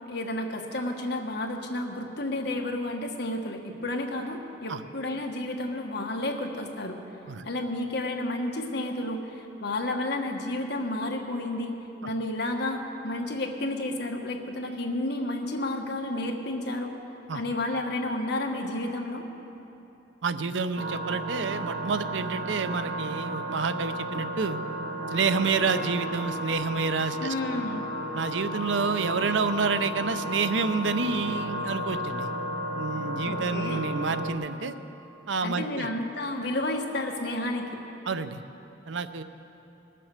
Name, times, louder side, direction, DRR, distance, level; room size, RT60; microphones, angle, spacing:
voice 1, 0.1-7.0 7.4-11.8 12.0-16.9 17.3-19.2 27.2-27.8 33.2-33.8 35.4-37.7, left 1 dB, 60° left, 2 dB, 1.4 m, -31 dB
voice 2, 20.2-24.6 25.1-27.3 28.1-32.3 32.8-34.7 35.3-35.9 38.1-38.4 38.9-39.2, right 5 dB, 75° right, 11 dB, 0.6 m, -29 dB
sound 1, 20.8-34.3, equal, 55° right, 1.0 m, -33 dB
20.5 x 7.6 x 6.6 m, 3.0 s
head